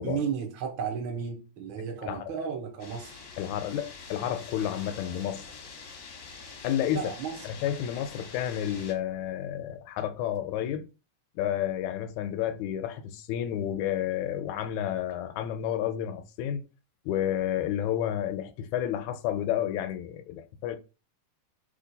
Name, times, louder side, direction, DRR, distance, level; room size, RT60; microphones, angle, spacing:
voice 1, 0.0-3.3 6.8-7.4, right 7 dB, 65° right, 1.3 m, -34 dB
sound 1, 2.8-8.9, left 4 dB, 60° left, 1.2 m, -45 dB
voice 2, 3.4-5.4 6.6-7.1 7.4-10.9 11.4-16.6 17.1-20.8, left 10 dB, 80° left, 1.8 m, -31 dB
4.3 x 3.1 x 3.9 m
omnidirectional pair, 3.5 m